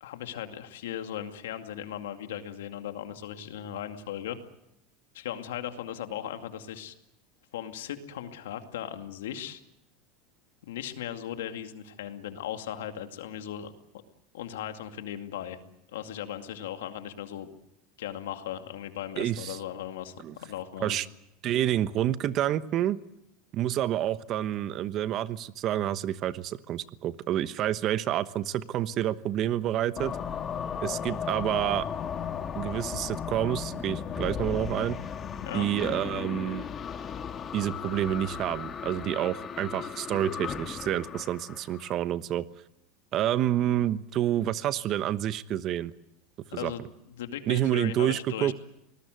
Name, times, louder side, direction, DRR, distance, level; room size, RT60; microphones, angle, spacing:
voice 1, 0.0-4.4 5.1-6.9 7.5-9.6 10.7-13.7 14.3-15.6 15.9-17.5 18.0-20.1 20.4-21.0 35.3-35.7 46.5-46.8 47.2-48.5, left 10 dB, 90° left, 7 dB, 2.2 m, -37 dB
voice 2, 19.2-19.6 20.2-20.3 20.8-21.1 21.4-23.0 23.5-30.2 30.8-31.9 32.6-35.0 35.5-36.7 37.5-42.5 43.1-45.9 46.5-46.7 47.5-48.5, right 12 dB, 45° right, 14 dB, 1.1 m, -28 dB
sound 1, 30.0-41.9, left 7 dB, 30° left, 1.5 m, -36 dB
25.5 x 19.5 x 7.8 m, 0.81 s
supercardioid pair, 120°, 0 cm